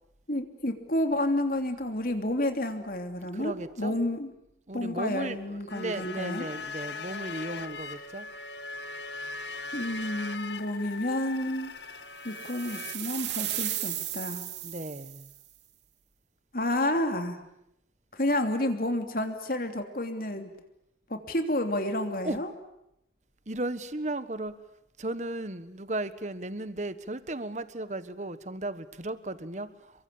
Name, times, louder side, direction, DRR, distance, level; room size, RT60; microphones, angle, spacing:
voice 1, 0.3-4.3 4.7-6.5 9.7-11.7 12.2-14.4 16.5-17.4 18.1-20.5 21.1-22.5, left 1 dB, 55° left, 6 dB, 3.1 m, -30 dB
voice 2, 3.3-4.0 4.7-8.3 14.6-15.3 22.2-22.4 23.5-24.6 25.0-29.7, right 2 dB, 40° right, 13 dB, 1.4 m, -35 dB
sound 1, 5.7-13.0, left 4 dB, 85° left, 2.0 m, -39 dB
sound 2, 12.4-15.4, right 13 dB, 85° right, 2.8 m, -35 dB
28.5 x 23.0 x 8.7 m, 0.79 s
head